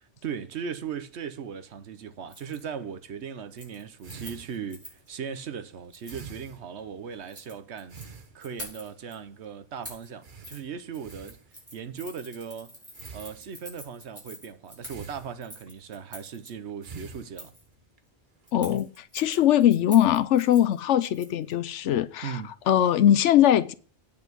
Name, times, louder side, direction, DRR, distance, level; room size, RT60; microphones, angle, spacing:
voice 1, 0.2-11.4 11.7-12.8 13.1-17.5 22.2-22.5, right 7 dB, 70° right, 1.1 m, -38 dB
Keys jangling, 2.3-2.6 3.0-3.2 3.5-5.1 5.9-6.3 7.1-8.1 8.4-9.1 9.8-10.1 10.4-10.6 10.9-16.5 17.3-17.7 18.5-21.5 21.8-21.9, equal, 10° right, 4.7 m, -46 dB
sound 1, 4.0-7.3 7.9-8.8 9.3-9.5 9.7-9.8 10.2-11.9 12.9-13.9 14.9-15.8 16.5-18.0 18.4-18.8, right 5 dB, 45° right, 1.1 m, -47 dB
voice 2, 18.5-22.4 22.7-23.7, left 11 dB, 85° left, 0.9 m, -21 dB
9.1 x 5.3 x 7.9 m
omnidirectional pair, 1.2 m